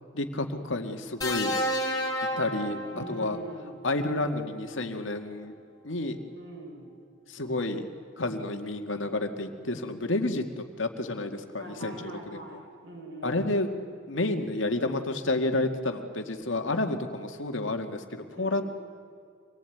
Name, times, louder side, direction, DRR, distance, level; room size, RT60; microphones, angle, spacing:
voice 1, 0.1-1.6 2.4-3.4 3.8-5.5 5.8-6.2 7.3-7.9 8.2-12.4 13.2-13.7 14.1-18.6, left 2 dB, 85° left, 6 dB, 2.0 m, -30 dB
sound 1, 1.2-3.5 4.8-5.0, left 1 dB, 20° left, 3.3 m, -31 dB
voice 2, 2.9-3.9 6.4-7.0 11.6-13.4 18.3-18.6, right 1 dB, 75° right, -1 dB, 6.6 m, -43 dB
26.0 x 18.5 x 9.3 m, 2.3 s
head